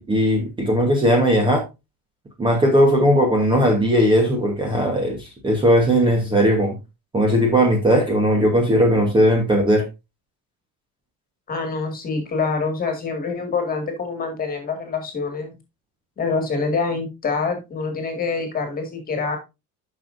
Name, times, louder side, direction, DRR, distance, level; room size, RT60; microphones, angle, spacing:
voice 1, 0.0-1.6 2.4-6.8 7.1-9.8, equal, 15° right, 1.1 m, -18 dB
voice 2, 11.5-15.6 16.2-19.4, left 4 dB, 25° left, 1.9 m, -25 dB
10.0 x 6.3 x 2.6 m
cardioid pair, 180°, 36 cm